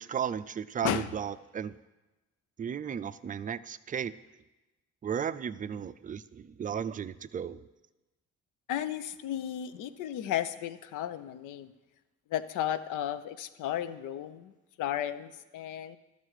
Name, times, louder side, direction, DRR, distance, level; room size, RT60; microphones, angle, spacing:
voice 1, 0.0-1.7 2.6-4.1 5.0-7.6, right 8 dB, 30° right, 14 dB, 0.3 m, -35 dB
voice 2, 8.7-11.7 12.3-14.5 14.8-16.0, left 10 dB, 90° left, 13 dB, 0.6 m, -34 dB
12.5 x 6.6 x 4.8 m, 1.1 s
cardioid pair, 90°, 30 cm